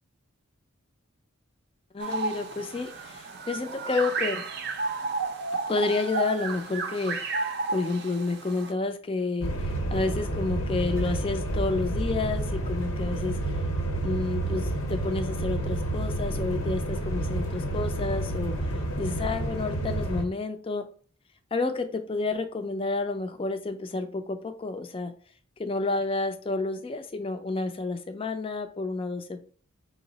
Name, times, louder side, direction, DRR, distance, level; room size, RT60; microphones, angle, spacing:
voice 1, 1.9-4.4 5.7-13.6 14.0-20.9 21.5-25.1 25.6-29.4, left 3 dB, 25° left, 7 dB, 0.4 m, -30 dB
sound 1, 2.0-8.7, right 3 dB, 50° right, 0.5 m, -32 dB
sound 2, 9.4-20.2, right 1 dB, 75° left, 0.9 m, -29 dB
5.4 x 2.0 x 3.9 m, 0.44 s
head